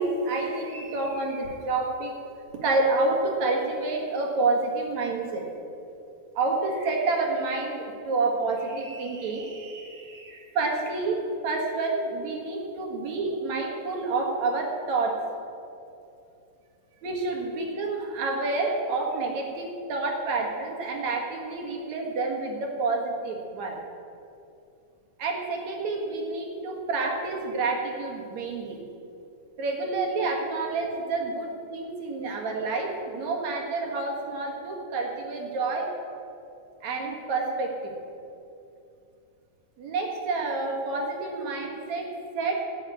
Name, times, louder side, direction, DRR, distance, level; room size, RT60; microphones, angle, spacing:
voice 1, 0.0-2.2 2.6-5.5 6.3-15.2 17.0-23.8 25.2-28.8 29.6-35.9 36.8-37.9 39.8-42.1 42.3-42.6, right 3 dB, 65° right, 1 dB, 3.1 m, -28 dB
15.0 x 6.5 x 9.1 m, 2.7 s
omnidirectional pair, 3.5 m